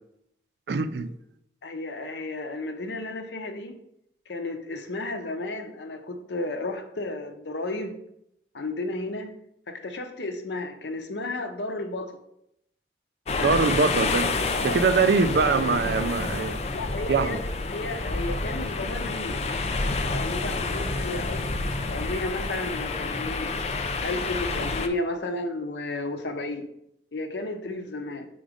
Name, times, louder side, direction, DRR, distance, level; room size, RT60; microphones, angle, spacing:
voice 1, 0.7-1.1 13.4-14.3 14.6-16.6 17.1-17.4, right 4 dB, 70° right, 0.4 m, -23 dB
voice 2, 1.6-3.7 4.3-8.0 8.5-9.3 9.7-12.2 13.3-13.7 14.5-14.8 16.7-17.4 17.7-19.4 20.0-23.6 24.0-26.7 27.1-28.3, left 2 dB, 80° left, 0.7 m, -33 dB
sound 1, 13.3-24.9, left 3 dB, 35° left, 0.4 m, -29 dB
5.0 x 3.9 x 4.9 m
head